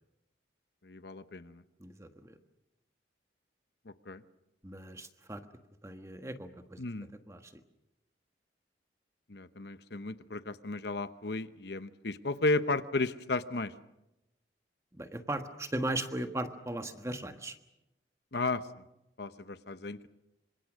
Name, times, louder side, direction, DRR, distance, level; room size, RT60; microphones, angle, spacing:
voice 1, 0.8-1.6 3.9-4.2 6.8-7.1 9.3-13.7 18.3-18.6 19.2-20.1, left 2 dB, 65° left, 12 dB, 1.0 m, -34 dB
voice 2, 1.8-2.4 4.6-5.4 5.8-6.8 7.3-7.5 14.9-17.6, right 1 dB, 15° right, 7 dB, 1.4 m, -37 dB
27.5 x 25.5 x 6.3 m, 0.91 s
head